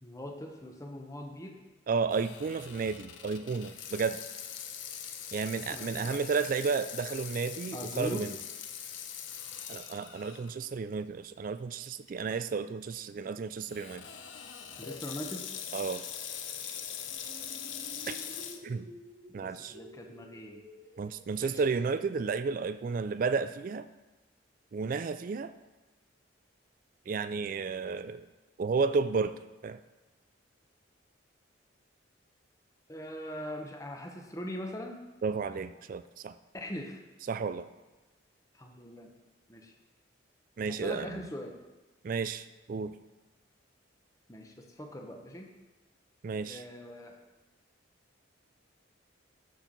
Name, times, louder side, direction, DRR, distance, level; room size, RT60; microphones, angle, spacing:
voice 1, 0.0-1.6 5.7-6.2 7.7-8.3 14.8-15.5 19.4-20.6 21.4-21.6 32.9-35.0 36.5-37.0 38.5-39.1 39.5-39.7 40.7-41.6 44.3-45.5 46.5-47.2, equal, 15° left, 2 dB, 0.9 m, -41 dB
voice 2, 1.9-4.2 5.3-8.3 9.7-14.1 15.7-16.0 18.1-18.2 18.6-18.9 19.3-19.7 21.0-23.9 24.7-25.5 27.1-28.3 28.6-29.3 29.6-29.8 35.2-36.3 37.3-37.7 40.6-41.2 42.0-42.9 46.2-46.6, right 5 dB, 45° right, 12 dB, 0.3 m, -32 dB
Water tap faucet / Sink (filling or washing), 2.1-10.5 11.0-11.1 11.8-12.1 13.7-18.6, left 8 dB, 75° left, 0.8 m, -42 dB
sound 1, 17.1-22.5, equal, 70° right, 2.1 m, -52 dB
13.0 x 4.5 x 5.2 m, 1.1 s
head